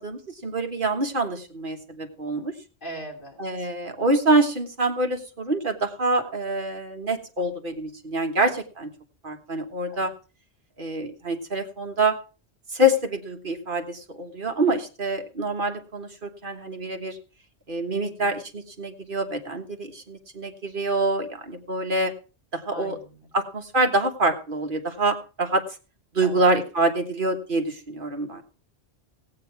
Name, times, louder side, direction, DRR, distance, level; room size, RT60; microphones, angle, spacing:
voice 1, 0.0-2.5 3.4-8.9 9.2-10.1 10.8-12.2 12.7-17.2 17.7-22.1 22.5-23.0 23.3-25.6 26.1-28.4, right 1 dB, 50° right, 5 dB, 1.6 m, -26 dB
voice 2, 2.8-3.7 9.9-10.1 22.7-23.3 26.2-26.4, right 1 dB, 50° left, 0 dB, 3.1 m, -40 dB
17.0 x 8.8 x 4.6 m, 0.35 s
omnidirectional pair, 1.1 m